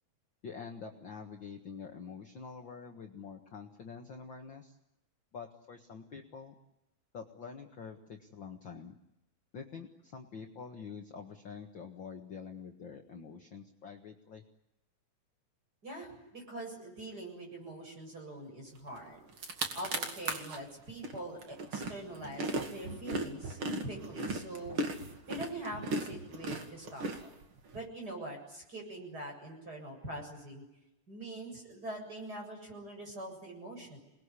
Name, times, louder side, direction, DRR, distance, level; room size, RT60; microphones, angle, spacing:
voice 1, 0.4-4.8 5.3-6.5 7.1-8.9 9.5-14.4, left 5 dB, 45° left, 3 dB, 2.0 m, -46 dB
voice 2, 15.8-19.2 19.7-24.8 25.3-27.3 27.7-30.6 31.1-34.0, right 1 dB, 30° right, 2 dB, 8.2 m, -44 dB
sound 1, 19.0-19.1 19.3-20.6 21.0-27.8, right 2 dB, 45° right, 2.9 m, -37 dB
28.0 x 21.0 x 9.9 m, 0.90 s
omnidirectional pair, 3.6 m